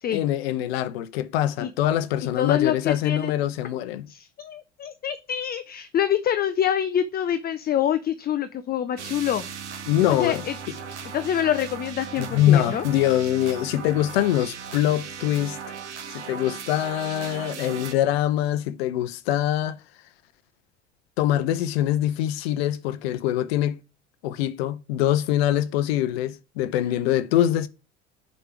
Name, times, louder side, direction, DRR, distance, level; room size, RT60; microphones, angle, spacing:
voice 1, 0.1-4.1 9.9-10.4 12.2-15.6 16.1-19.8 21.2-23.8 24.2-27.7, left 12 dB, 60° left, 0.8 m, -24 dB
voice 2, 2.4-3.3 4.1-9.4 10.1-10.6 11.1-12.8, left 10 dB, 25° left, 0.6 m, -26 dB
sound 1, 9.0-17.9, right 7 dB, 70° right, 1.2 m, -37 dB
6.7 x 5.3 x 4.5 m
figure-of-eight pair, 65°, 35 cm